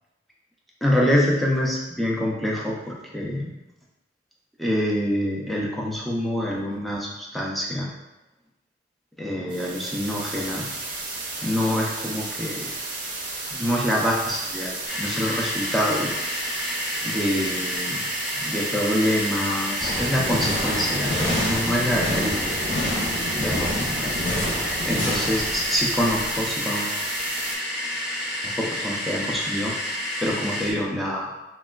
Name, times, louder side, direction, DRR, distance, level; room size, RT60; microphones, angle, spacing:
voice 1, 0.8-3.5 4.6-7.9 9.2-10.7 11.4-12.7 13.5-16.1 17.0-18.0 18.4-22.6 23.4-24.1 24.8-27.0 28.4-29.7 30.2-31.3, equal, ahead, -4 dB, 0.4 m, -26 dB
sound 1, 9.5-27.6, right 3 dB, 50° right, 0.5 m, -33 dB
sound 2, 14.9-30.7, left 1 dB, 65° left, 0.7 m, -30 dB
sound 3, 19.8-26.4, left 1 dB, 30° left, 0.8 m, -28 dB
3.4 x 2.2 x 2.3 m, 1.0 s
head